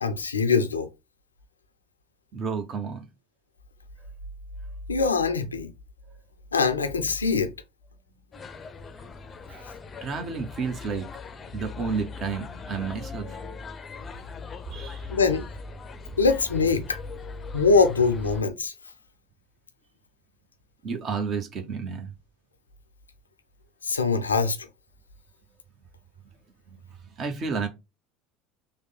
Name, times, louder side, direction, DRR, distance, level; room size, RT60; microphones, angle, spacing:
voice 1, 0.0-0.9 4.9-5.7 6.5-7.5 15.1-15.5 16.2-17.0 17.5-18.7 23.8-24.6, left 4 dB, 90° left, 0.4 m, -23 dB
voice 2, 2.3-3.0 9.5-9.7 10.0-11.1 11.5-13.6 14.7-15.1 20.8-22.1 27.2-27.7, right 5 dB, 45° right, 0.9 m, -31 dB
sound 1, 8.3-18.4, left 4 dB, 30° left, 0.5 m, -40 dB
3.3 x 2.2 x 4.0 m
hypercardioid pair, 70°, 0 cm